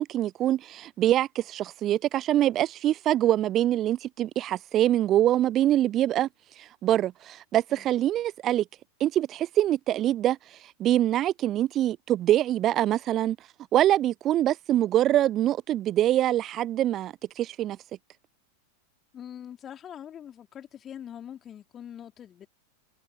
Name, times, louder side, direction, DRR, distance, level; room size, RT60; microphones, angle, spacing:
voice 1, 0.0-6.3 6.6-8.6 9.0-10.4 10.8-13.4 13.7-17.8, right 12 dB, 30° right, 0.4 m, -24 dB
voice 2, 19.1-22.5, left 9 dB, 25° left, 3.7 m, -43 dB
figure-of-eight pair, 90°, 0 cm